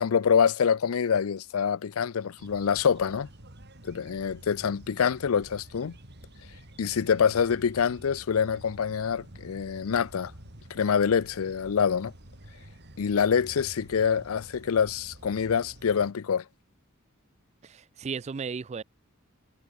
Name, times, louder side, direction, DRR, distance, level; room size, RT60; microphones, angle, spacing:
voice 1, 0.0-3.3 3.9-6.0 6.8-10.3 10.7-12.1 13.0-16.4, left 7 dB, 90° left, 0.5 m, -25 dB
sound 1, 2.4-16.1, right 1 dB, 55° right, 4.2 m, -49 dB
voice 2, 17.6-18.8, right 5 dB, 30° right, 0.3 m, -35 dB
head